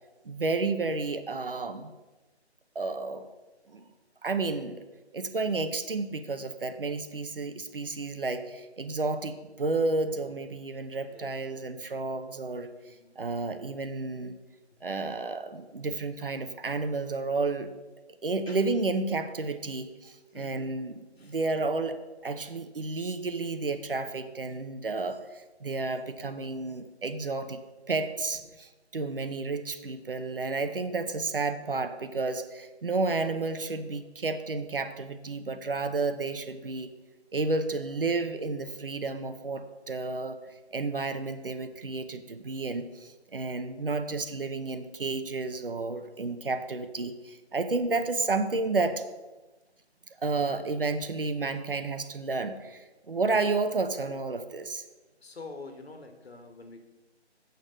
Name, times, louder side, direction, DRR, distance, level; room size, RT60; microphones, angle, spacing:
voice 1, 0.2-1.9 2.7-3.3 3.7-3.8 4.2-4.8 5.1-12.7 13.2-14.4 14.8-17.7 18.2-27.6 27.9-36.9 37.3-40.4 40.7-49.0 50.2-54.8, right 3 dB, 55° right, 9 dB, 0.9 m, -31 dB
voice 2, 20.3-20.7 21.2-21.4 55.2-56.8, left 3 dB, 65° left, 6 dB, 1.7 m, -46 dB
8.0 x 6.6 x 6.6 m, 1.1 s
hypercardioid pair, 175°, 33 cm